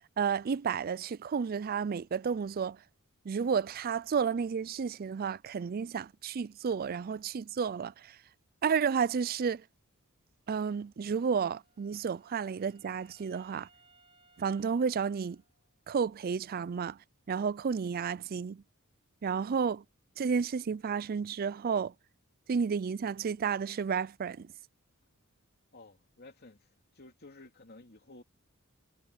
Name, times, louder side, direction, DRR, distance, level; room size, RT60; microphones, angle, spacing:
voice 1, 0.2-2.8 3.3-8.1 8.6-9.6 10.5-13.7 14.4-15.4 15.9-17.0 17.3-18.6 19.2-19.8 20.2-21.9 22.5-24.5, right 6 dB, 45° right, 0.4 m, -31 dB
Wind instrument woodwind instrument, 11.2-16.0, right 3 dB, 25° right, 3.6 m, -66 dB
voice 2, 25.7-26.7 26.9-28.2, left 2 dB, 50° left, 3.0 m, -53 dB
head